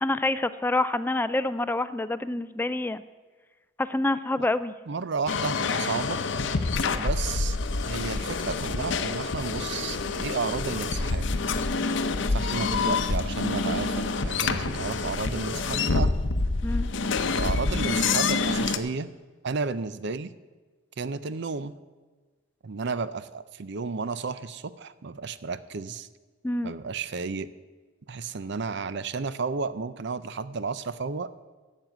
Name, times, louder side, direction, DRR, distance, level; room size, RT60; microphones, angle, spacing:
voice 1, 0.0-3.0 3.8-4.7 16.6-16.9 26.4-26.7, left 2 dB, 10° left, 14 dB, 0.3 m, -27 dB
voice 2, 4.9-6.2 7.0-7.6 7.8-11.3 12.3-16.2 17.4-19.1 19.4-20.3 21.0-21.8 22.6-26.1 26.6-27.5 28.1-31.3, right 4 dB, 60° right, 15 dB, 0.6 m, -32 dB
sound 1, 5.3-18.8, left 4 dB, 65° left, 0.7 m, -27 dB
12.0 x 7.5 x 8.0 m, 1.3 s
head